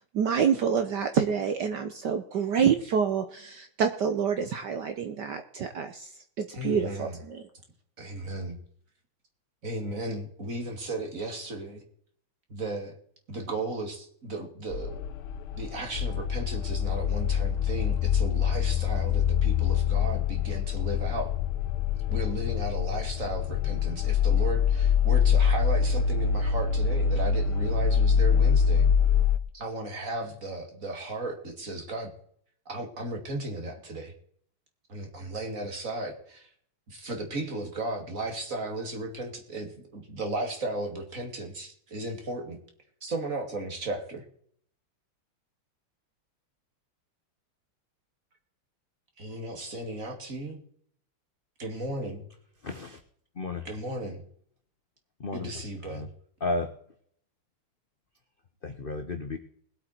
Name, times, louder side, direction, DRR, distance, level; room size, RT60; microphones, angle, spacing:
voice 1, 0.1-6.1 6.4-7.4, right 7 dB, 60° right, 7 dB, 1.4 m, -27 dB
voice 2, 6.5-7.2 8.0-8.6 9.6-11.8 12.5-12.9 13.3-15.0 15.5-21.3 22.1-28.8 29.5-32.1 32.7-34.1 34.9-36.5 36.9-42.6 43.0-44.2 49.2-50.6 51.6-52.3 53.6-54.2 55.3-56.1, right 2 dB, 40° right, 3 dB, 2.7 m, -35 dB
sound 1, 14.7-29.4, left 7 dB, 85° left, 1.6 m, -25 dB
voice 3, 52.6-53.0 53.3-53.7 55.2-56.1 56.4-56.7 58.6-59.4, left 2 dB, 45° left, 6 dB, 0.7 m, -33 dB
21.0 x 8.2 x 4.4 m, 0.62 s
omnidirectional pair, 2.3 m